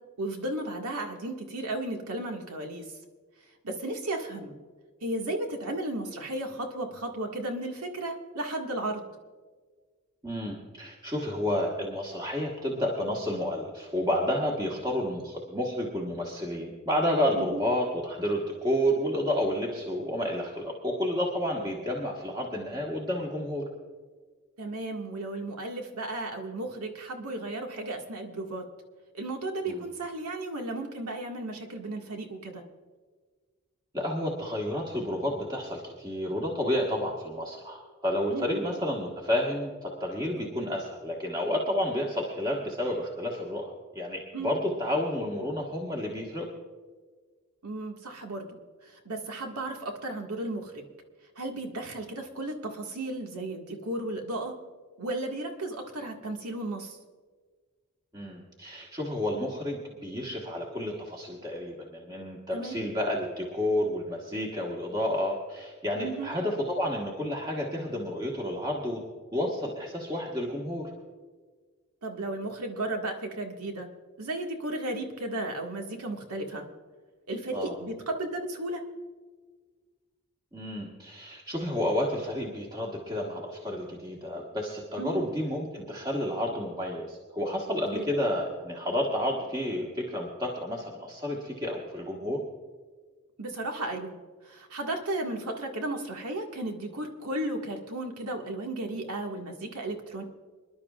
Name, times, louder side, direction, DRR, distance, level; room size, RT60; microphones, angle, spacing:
voice 1, 0.2-2.8 3.6-4.5 5.0-9.0 17.4-17.6 24.6-28.6 29.1-32.6 38.3-38.6 40.4-40.5 44.3-44.5 47.6-50.9 51.4-54.6 55.0-57.0 62.5-62.8 66.0-66.3 72.0-73.9 74.2-76.6 77.3-78.8 85.0-85.3 87.9-88.1 93.4-94.2 94.4-100.2, right 2 dB, 90° right, 2 dB, 1.8 m, -34 dB
voice 2, 10.2-23.6 29.7-29.8 33.9-46.5 58.1-69.0 69.3-70.9 77.5-77.8 80.5-92.4, left 1 dB, 20° right, -2 dB, 1.5 m, -30 dB
26.0 x 11.5 x 2.4 m, 1.5 s
head